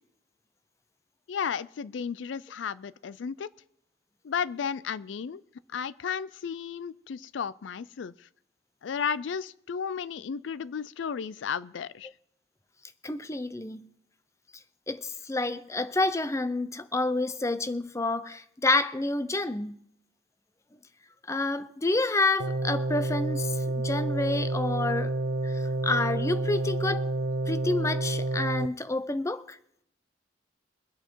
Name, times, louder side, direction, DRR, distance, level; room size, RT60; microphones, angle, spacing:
voice 1, 1.3-3.5 4.2-5.4 5.7-8.3 8.8-12.1, left 7 dB, 75° left, 0.4 m, -33 dB
voice 2, 13.0-13.9 14.9-19.8 21.3-25.1 25.4-27.0 27.5-29.6, left 2 dB, 15° left, 0.5 m, -29 dB
sound 1, 22.4-28.7, right 2 dB, 85° right, 0.6 m, -29 dB
23.5 x 8.0 x 4.5 m
head